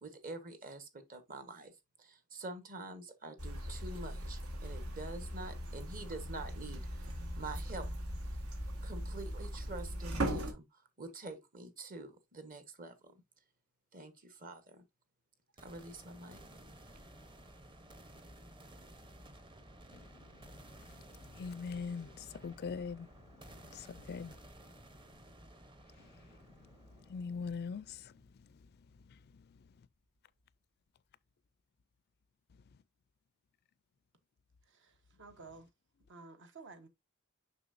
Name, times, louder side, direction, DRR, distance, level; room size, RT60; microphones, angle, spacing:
voice 1, 0.0-1.7 2.0-7.9 8.8-13.2 13.9-14.8 15.6-16.4, right 2 dB, 40° right, 1.3 m, -47 dB
sound 1, 3.4-10.5, right 1 dB, 75° right, 1.5 m, -39 dB
sound 2, 15.6-29.5, right 1 dB, 25° right, 0.9 m, -56 dB
voice 2, 21.4-23.1 23.7-24.3 27.1-28.1, left 5 dB, 50° left, 0.4 m, -41 dB
voice 3, 35.2-35.7 36.1-36.9, right 3 dB, 60° right, 1.1 m, -51 dB
6.9 x 5.6 x 2.6 m
head